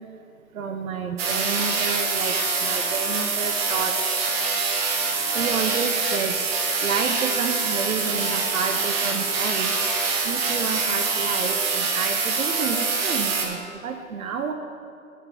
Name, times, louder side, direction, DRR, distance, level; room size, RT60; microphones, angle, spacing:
voice 1, 0.5-2.3 2.6-3.9 5.3-6.4 6.8-9.7 10.2-14.5, right 6 dB, 70° right, 5 dB, 0.7 m, -30 dB
sound 1, 1.2-13.5, right 4 dB, 45° right, 1.3 m, -25 dB
6.2 x 5.8 x 6.9 m, 2.5 s
figure-of-eight pair, 125°, 43 cm